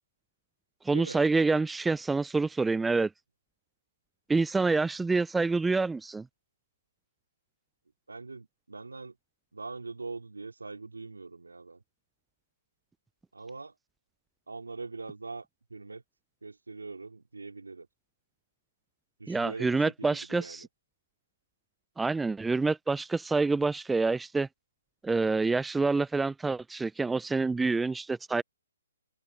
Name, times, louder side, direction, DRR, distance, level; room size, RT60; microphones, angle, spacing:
voice 1, 0.9-3.1 4.3-6.2 19.3-20.7 22.0-24.5 25.0-28.4, right 3 dB, 5° right, 0.3 m, -27 dB
voice 2, 8.1-9.1 9.5-11.8 13.3-13.7 14.5-15.4 15.7-16.0 16.4-17.9 19.2-20.6, right 3 dB, 90° right, 2.6 m, -42 dB
hypercardioid pair, 140°, 0 cm